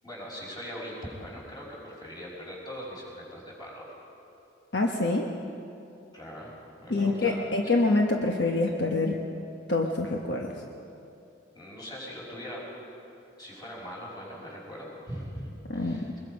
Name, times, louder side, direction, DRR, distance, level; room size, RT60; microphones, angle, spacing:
voice 1, 0.0-3.9 6.1-6.5 6.8-7.8 11.5-12.7 13.4-16.1, equal, 20° left, -4 dB, 5.7 m, -41 dB
voice 2, 4.7-5.3 6.9-9.2 9.7-10.6 15.7-16.0, left 2 dB, 60° left, 0 dB, 1.3 m, -26 dB
23.0 x 21.5 x 5.3 m, 2.7 s
head